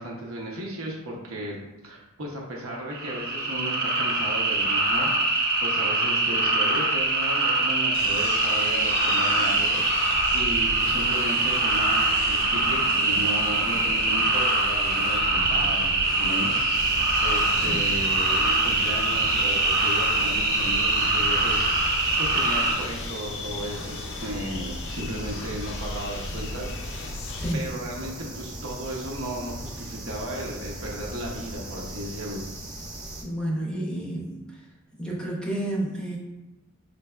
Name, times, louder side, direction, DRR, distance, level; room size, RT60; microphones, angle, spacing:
voice 1, 0.0-1.6 1.8-10.1 10.3-16.6 17.2-21.7 22.2-26.7 27.5-32.4, right 1 dB, 80° right, -2 dB, 0.8 m, -35 dB
sound 1, 2.9-22.7, right 2 dB, 50° right, 0.9 m, -23 dB
sound 2, 7.9-27.5, left 3 dB, 60° left, 0.4 m, -36 dB
sound 3, 16.7-33.2, right 1 dB, 20° right, 0.9 m, -39 dB
voice 2, 33.2-34.4 35.0-36.2, right 1 dB, 5° left, -4 dB, 0.6 m, -30 dB
5.3 x 3.3 x 2.3 m, 1.1 s
head